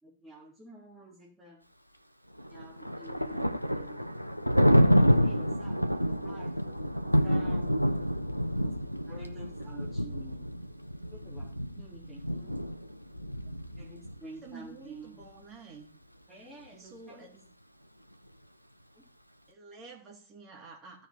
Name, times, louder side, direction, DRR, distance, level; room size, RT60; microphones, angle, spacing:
voice 1, 0.0-1.7 2.5-4.2 4.8-7.9 8.6-8.8 9.1-10.5 11.1-12.6 13.8-15.2 16.3-17.5 18.9-19.0, right 1 dB, 10° right, -7 dB, 3.6 m, -50 dB
Thunder, 2.4-14.2, equal, 90° left, 0.5 m, -28 dB
voice 2, 14.4-16.0 16.7-17.4 19.5-21.1, right 4 dB, 30° right, -1 dB, 3.3 m, -49 dB
15.0 x 5.1 x 4.6 m, 0.41 s
figure-of-eight pair, 90°, 0 cm